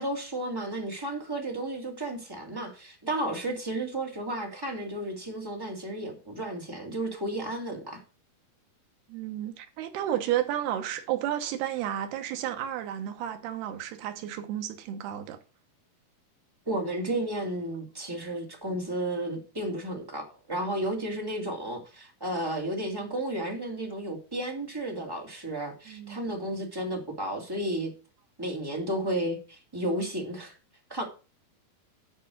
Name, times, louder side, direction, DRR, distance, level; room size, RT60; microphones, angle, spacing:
voice 1, 0.0-8.0 16.6-27.9 28.4-30.5 30.9-31.0, right 1 dB, 10° right, 1.4 m, -33 dB
voice 2, 9.1-15.4 25.9-26.2, right 11 dB, 80° right, 3.0 m, -32 dB
10.5 x 5.5 x 6.3 m
omnidirectional pair, 4.6 m